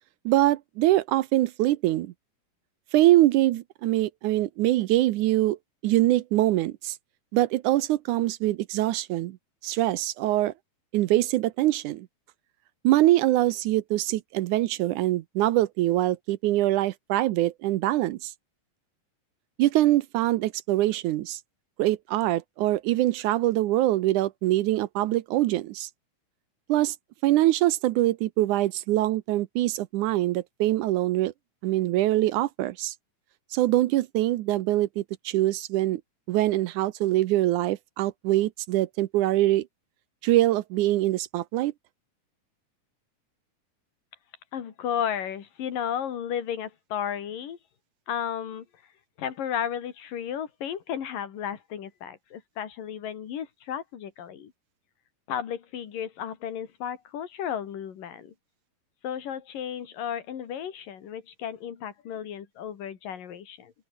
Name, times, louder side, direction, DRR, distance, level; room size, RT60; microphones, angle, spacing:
voice 1, 0.3-2.1 2.9-5.6 5.8-7.0 7.3-9.4 9.6-10.5 10.9-12.1 12.8-18.3 19.6-21.4 21.8-25.9 26.7-27.0 27.2-31.3 31.6-32.9 33.5-36.0 36.3-39.7 40.2-41.7, right 15 dB, 75° right, 2.0 m, -24 dB
voice 2, 44.5-47.6 48.1-48.7 49.2-54.5 55.3-58.3 59.0-63.7, left 9 dB, 75° left, 4.1 m, -33 dB
open air
omnidirectional pair, 3.9 m